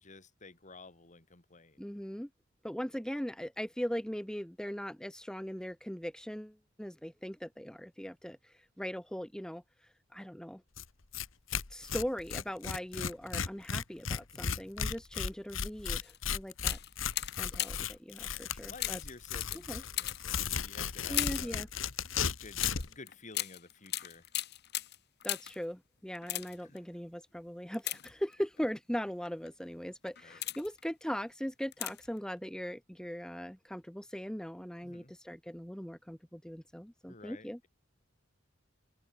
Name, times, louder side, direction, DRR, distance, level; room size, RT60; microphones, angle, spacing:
voice 1, 0.0-1.8 14.3-14.7 18.3-21.6 22.4-24.3 26.6-26.8 30.2-30.4 34.8-35.1 37.1-37.7, left 3 dB, 40° left, 2.3 m, -52 dB
voice 2, 1.8-2.3 2.6-10.6 11.7-16.8 17.4-19.0 19.7-19.8 21.1-21.7 25.2-37.6, equal, 5° left, 1.1 m, -40 dB
Tearing, 10.8-10.9 11.1-11.3 11.5-22.9, left 7 dB, 80° left, 1.6 m, -35 dB
sound 1, 16.0-16.2 16.6-18.0 18.8-21.6 22.6-25.6 26.1-26.8 27.7-28.6 29.2-29.5 30.0-30.8 31.7-32.2 32.4-32.5, left 14 dB, 55° left, 1.5 m, -38 dB
open air
head